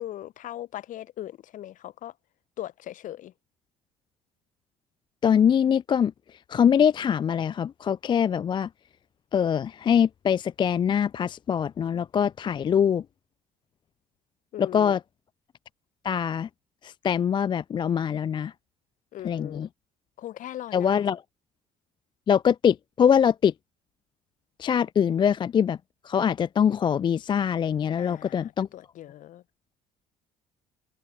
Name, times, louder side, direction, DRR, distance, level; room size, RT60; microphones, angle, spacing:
voice 1, 0.0-2.1 2.6-3.3 14.5-14.9 19.1-19.7 20.2-21.0 28.0-29.4, left 13 dB, 45° left, 1.1 m, -39 dB
voice 2, 5.2-6.1 6.5-8.7 9.3-13.0 14.6-15.0 16.0-16.5 16.8-18.5 19.2-19.7 20.7-21.2 22.3-23.5 24.6-25.8 26.0-28.7, left 8 dB, 25° left, 0.4 m, -23 dB
figure-of-eight pair, 55°, 18 cm